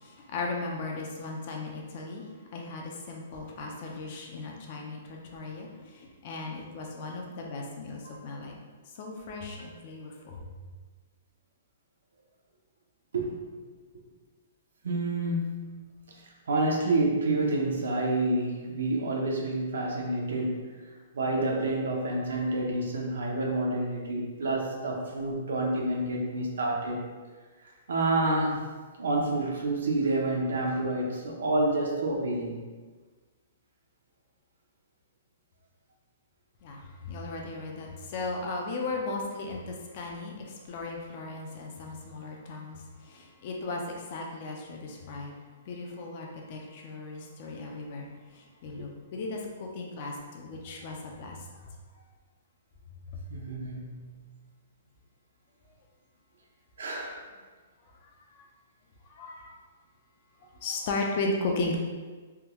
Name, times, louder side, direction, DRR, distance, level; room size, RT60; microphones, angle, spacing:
voice 1, 0.0-2.2 2.5-5.7 5.9-8.5 9.0-10.4 36.6-42.8 43.0-45.3 45.7-48.0 48.3-51.4 59.2-59.6 60.6-61.8, left 3 dB, 35° left, 0 dB, 0.5 m, -36 dB
voice 2, 14.8-16.1 16.5-20.7 21.1-27.0 27.9-28.6 29.0-32.6 53.3-54.1 56.8-57.2, right 2 dB, 85° right, -1 dB, 0.7 m, -28 dB
3.4 x 2.2 x 2.9 m, 1.4 s
hypercardioid pair, 170°, 0 cm